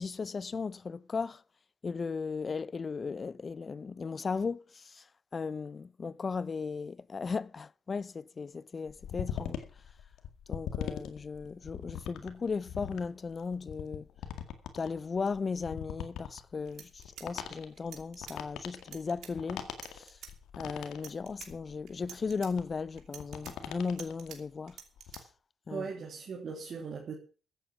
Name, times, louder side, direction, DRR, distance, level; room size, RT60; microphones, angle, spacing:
voice 1, 0.0-1.4 1.8-5.1 5.3-9.6 10.5-14.1 14.7-20.2 20.6-24.8 25.7-25.9, left 5 dB, 35° left, 0.6 m, -36 dB
sound 1, 8.9-24.3 24.7-25.2, left 9 dB, 80° left, 2.0 m, -41 dB
sound 2, 16.3-16.4 16.7-18.4 18.8-19.3 19.7-20.3 20.9-21.5 21.9-22.5 23.0-24.4 24.7-25.2, right 9 dB, 75° right, 2.8 m, -48 dB
voice 2, 25.7-27.1, right 5 dB, 55° right, 3.0 m, -39 dB
14.5 x 8.9 x 6.0 m
cardioid pair, 90°, 0 cm